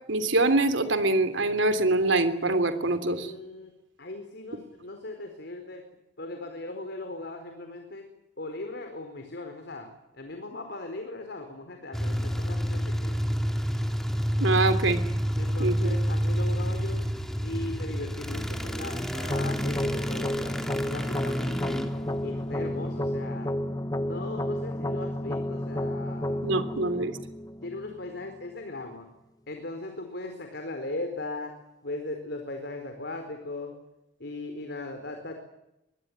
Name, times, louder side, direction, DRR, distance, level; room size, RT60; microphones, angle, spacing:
voice 1, 0.1-3.3 14.4-15.0 15.6-15.9 26.4-27.1, right 2 dB, 85° right, 11 dB, 3.2 m, -24 dB
voice 2, 3.1-3.7 4.0-5.8 6.2-8.1 8.4-13.2 15.4-17.1 17.4-20.6 20.8-21.8 22.2-23.5 24.0-27.1 27.6-29.1 29.5-33.8 34.2-35.4, left 2 dB, 65° left, 6 dB, 4.4 m, -38 dB
sound 1, 11.9-23.1, equal, ahead, 2.8 m, -29 dB
sound 2, 19.3-28.3, left 1 dB, 20° left, 0.9 m, -31 dB
24.5 x 22.0 x 9.6 m, 0.89 s
head